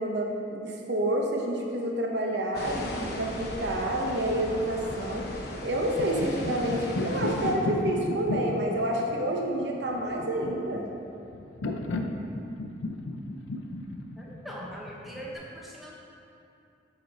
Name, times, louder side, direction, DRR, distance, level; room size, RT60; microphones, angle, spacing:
voice 1, 0.0-5.2 5.6-10.9, right 1 dB, 60° right, 0 dB, 0.6 m, -29 dB
sound 1, 2.5-7.5, left 1 dB, 55° left, 0.7 m, -37 dB
sound 2, 5.6-15.3, left 2 dB, 85° left, 0.5 m, -34 dB
voice 2, 14.2-15.9, equal, ahead, -4 dB, 0.8 m, -41 dB
7.5 x 4.2 x 4.1 m, 2.7 s
head